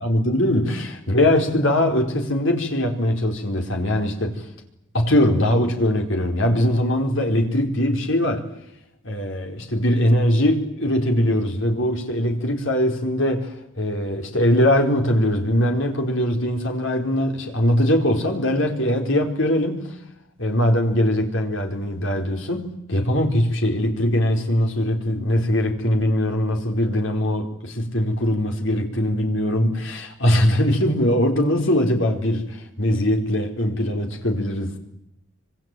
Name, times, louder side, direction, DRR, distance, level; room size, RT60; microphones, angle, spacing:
voice 1, 0.0-4.4 4.9-8.5 9.0-20.0 20.4-34.8, left 1 dB, 65° left, 4 dB, 4.4 m, -21 dB
25.5 x 24.5 x 9.2 m, 0.82 s
head